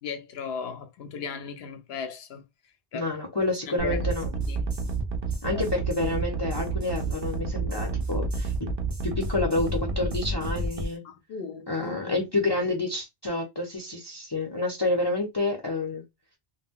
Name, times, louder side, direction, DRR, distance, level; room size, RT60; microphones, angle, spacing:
voice 1, 0.0-2.4 2.9-3.1 3.7-4.1 4.5-4.7 5.5-5.6 11.0-12.2, left 5 dB, 75° left, 0.8 m, -37 dB
voice 2, 2.9-4.3 5.4-8.5 9.0-11.0 11.7-16.0, left 2 dB, 30° left, 0.6 m, -28 dB
sound 1, 3.8-10.9, right 1 dB, 20° right, 0.6 m, -36 dB
sound 2, 3.8-10.9, right 4 dB, 65° right, 0.8 m, -30 dB
2.2 x 2.1 x 3.6 m
omnidirectional pair, 1.1 m